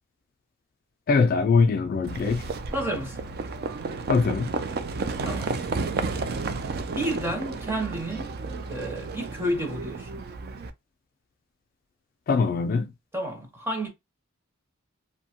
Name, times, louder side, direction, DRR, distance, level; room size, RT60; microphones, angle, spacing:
voice 1, 1.1-2.5 4.1-4.5 12.3-12.9, left 4 dB, 45° left, 0.3 m, -22 dB
Livestock farm animals working animals, 2.0-10.7, right 4 dB, 45° right, 0.3 m, -32 dB
voice 2, 2.7-3.3 5.2-5.5 6.9-8.3 8.7-10.2 13.1-13.9, right 1 dB, 10° right, 0.6 m, -31 dB
2.7 x 2.1 x 2.8 m
head